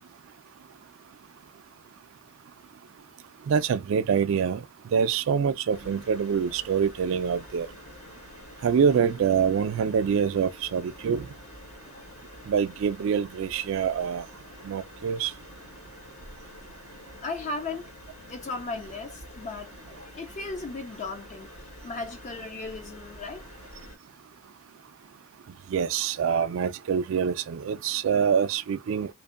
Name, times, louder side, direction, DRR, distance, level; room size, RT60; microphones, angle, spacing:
voice 1, 3.5-4.6 4.9-7.7 8.6-11.3 12.5-14.2 14.6-15.3 25.7-29.1, right 7 dB, 65° right, 0.3 m, -25 dB
sound 1, 5.7-24.0, left 1 dB, 80° left, 1.4 m, -47 dB
voice 2, 17.2-17.9 18.3-19.7 20.0-23.4, left 3 dB, 30° left, 0.3 m, -36 dB
2.6 x 2.1 x 2.4 m
head